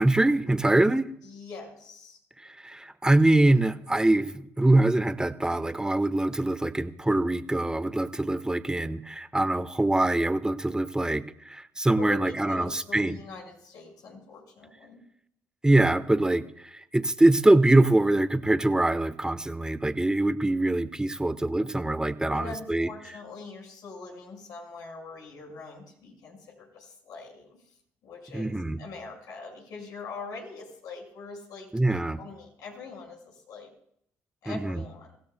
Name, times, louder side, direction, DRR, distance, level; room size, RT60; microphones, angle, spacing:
voice 1, 0.0-1.1 2.4-13.2 15.6-22.9 28.3-28.8 31.7-32.2 34.5-34.8, right 2 dB, 10° right, 11 dB, 1.1 m, -24 dB
voice 2, 1.2-2.2 11.9-15.0 22.3-27.5 28.0-33.7 34.4-35.2, left 4 dB, 70° left, 0 dB, 5.4 m, -43 dB
26.5 x 16.0 x 2.2 m, 0.69 s
hypercardioid pair, 55°, 7 cm